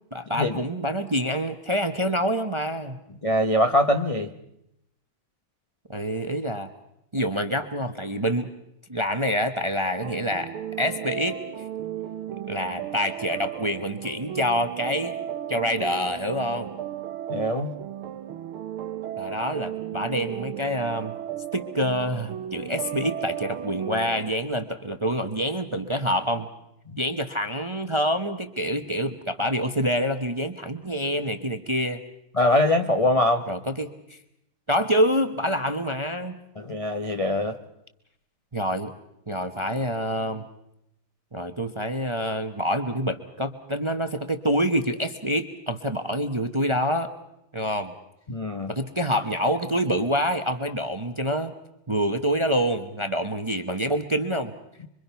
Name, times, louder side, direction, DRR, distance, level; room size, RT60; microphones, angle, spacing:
voice 1, 0.0-3.0 5.9-6.7 7.1-8.5 8.9-10.5 10.8-11.4 12.5-15.2 15.5-16.7 19.2-21.1 21.5-26.5 27.0-32.0 33.5-34.2 34.7-36.4 38.5-38.9 39.3-40.5 41.3-47.1 47.5-47.9 48.7-51.5 51.9-54.5, equal, 25° right, 8 dB, 0.6 m, -26 dB
voice 2, 3.2-4.3 17.3-17.7 32.3-33.4 36.6-37.6 48.3-48.7, left 1 dB, 55° left, 4 dB, 0.4 m, -22 dB
sound 1, 10.0-24.3, right 10 dB, 85° right, 2.0 m, -35 dB
25.5 x 24.5 x 5.8 m, 0.82 s
omnidirectional pair, 2.3 m